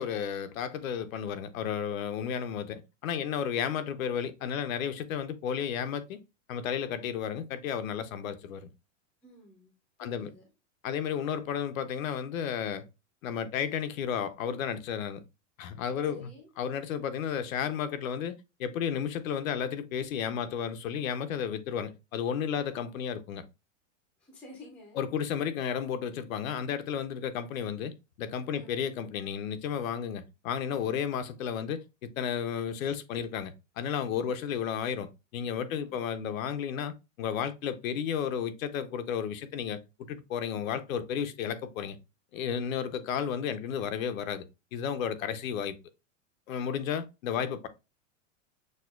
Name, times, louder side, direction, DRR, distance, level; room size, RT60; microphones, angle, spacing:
voice 1, 0.0-6.2 6.5-8.7 10.0-10.3 10.8-12.8 13.2-15.2 15.6-16.3 16.6-23.4 25.0-36.9 37.2-39.8 40.1-42.0 42.3-44.4 44.7-45.7 46.5-47.7, left 8 dB, 90° left, 0.7 m, -33 dB
voice 2, 9.2-9.7 10.0-10.5 16.0-16.5 24.2-25.0 28.5-28.7 35.7-36.0, left 2 dB, 5° left, 0.4 m, -51 dB
6.4 x 2.2 x 2.3 m
supercardioid pair, 160°, 39 cm